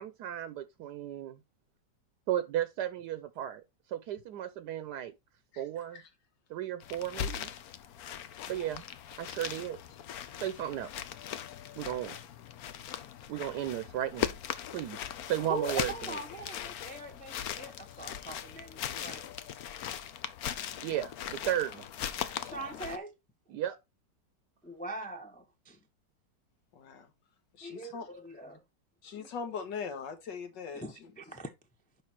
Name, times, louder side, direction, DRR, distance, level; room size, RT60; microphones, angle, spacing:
voice 1, 0.0-1.4 2.3-3.6 3.9-5.1 5.6-6.0 6.5-7.5 8.5-8.8 9.2-9.8 10.4-10.9 11.8-12.2 13.3-14.4 14.7-16.2 20.8-21.9 23.5-23.8, right 11 dB, 75° right, 1.2 m, -34 dB
sound 1, 6.8-23.0, left 10 dB, 65° left, 1.1 m, -39 dB
voice 2, 15.4-19.3 22.4-23.1 24.6-25.8 27.6-28.6 29.2-29.3 30.7-31.5, right 2 dB, 10° left, 0.5 m, -41 dB
voice 3, 16.3-16.8 18.2-18.3 26.7-27.1 27.6-28.1 29.0-31.1, left 5 dB, 80° left, 2.0 m, -41 dB
6.6 x 5.5 x 4.4 m
omnidirectional pair, 1.9 m